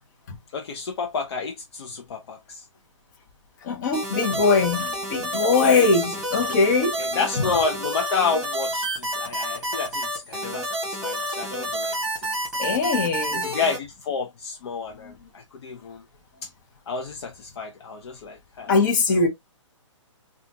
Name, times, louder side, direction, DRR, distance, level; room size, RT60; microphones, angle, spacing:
voice 1, 0.5-2.7 5.5-6.1 7.0-12.7 13.3-16.0 16.4-16.5 16.9-18.7 19.1-19.3, left 5 dB, 55° left, 0.6 m, -30 dB
voice 2, 3.6-6.9 12.6-13.5 15.0-15.1 18.7-19.3, left 4 dB, 35° left, 1.0 m, -21 dB
sound 1, 3.9-13.8, right 1 dB, 5° right, 1.7 m, -29 dB
3.6 x 2.4 x 2.8 m
hypercardioid pair, 155°, 16 cm